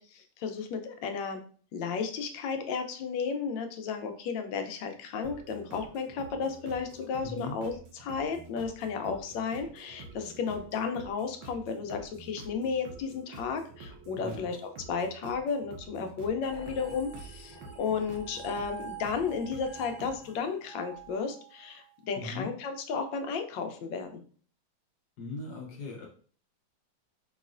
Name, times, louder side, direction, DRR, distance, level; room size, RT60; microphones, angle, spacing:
voice 1, 0.0-1.4 1.7-24.2, left 5 dB, 85° left, 6 dB, 1.4 m, -33 dB
sound 1, 5.2-20.4, right 4 dB, 80° right, 1.6 m, -49 dB
voice 2, 7.2-7.6 14.1-14.5 22.1-22.5 25.2-26.1, left 2 dB, 65° left, -1 dB, 1.4 m, -39 dB
sound 2, 16.4-21.9, right 5 dB, 45° left, 1.2 m, -46 dB
5.5 x 3.1 x 2.5 m, 0.43 s
omnidirectional pair, 2.0 m